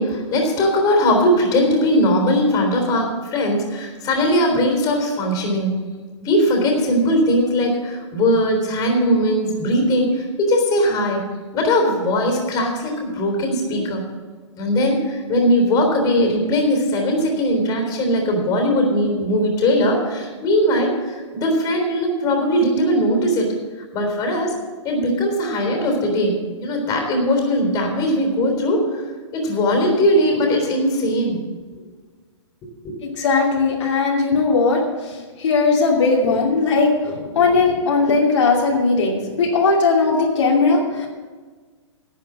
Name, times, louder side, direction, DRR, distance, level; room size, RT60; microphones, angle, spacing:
voice 1, 0.0-5.7 6.2-11.2 11.5-14.0 14.6-23.5 23.9-24.6 24.8-29.0 29.3-31.4 32.8-32.9, equal, 25° left, 2 dB, 3.7 m, -19 dB
voice 2, 33.0-41.1, left 4 dB, 70° left, -2 dB, 2.8 m, -18 dB
11.5 x 8.4 x 7.5 m, 1.4 s
hypercardioid pair, 145°, 16 cm